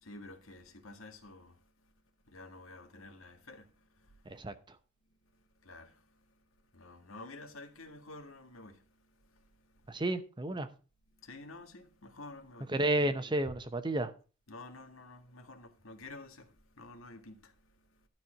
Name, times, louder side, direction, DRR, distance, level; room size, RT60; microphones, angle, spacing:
voice 1, 0.0-1.6 2.3-4.2 5.6-6.1 6.7-8.9 9.3-9.4 11.2-12.7 13.0-13.2 14.5-17.5, left 2 dB, 85° left, 1.8 m, -50 dB
voice 2, 4.3-4.8 9.9-10.7 12.7-14.1, right 1 dB, 20° right, 0.8 m, -32 dB
12.5 x 4.3 x 7.4 m
head